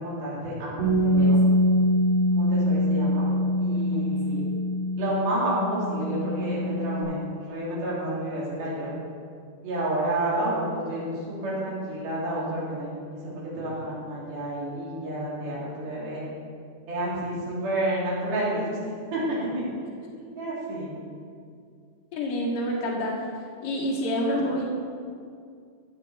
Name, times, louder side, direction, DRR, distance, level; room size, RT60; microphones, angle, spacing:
voice 1, 0.0-1.4 2.3-3.3 3.6-4.4 5.0-7.2 7.5-8.9 9.6-16.2 16.9-19.6 20.3-20.9, right 1 dB, 85° right, -7 dB, 4.6 m, -30 dB
Bass guitar, 0.8-7.0, equal, 45° right, 3.9 m, -24 dB
voice 2, 3.4-4.0 4.4-4.5 22.1-23.2 23.6-24.6, equal, 50° left, -4 dB, 2.2 m, -28 dB
16.0 x 7.1 x 4.1 m, 2.3 s
omnidirectional pair, 4.2 m